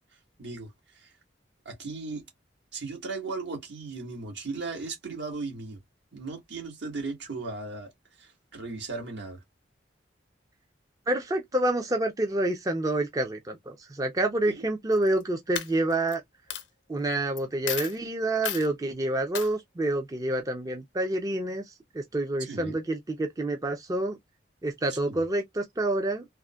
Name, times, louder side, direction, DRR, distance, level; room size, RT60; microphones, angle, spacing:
voice 1, 0.4-1.1 1.6-2.2 2.7-5.8 6.1-7.9 8.2-9.4 14.5-14.6 22.4-22.8 24.9-25.2, right 3 dB, 75° right, 1.5 m, -37 dB
voice 2, 11.1-16.2 16.9-24.2 24.6-26.2, right 1 dB, 20° right, 0.4 m, -28 dB
Coin (dropping), 14.9-15.2 15.5-16.1 16.5-16.6 17.4-17.5 17.7-18.0 18.4-18.7 19.3-19.5, left 9 dB, 80° left, 0.7 m, -33 dB
3.5 x 2.1 x 2.3 m
head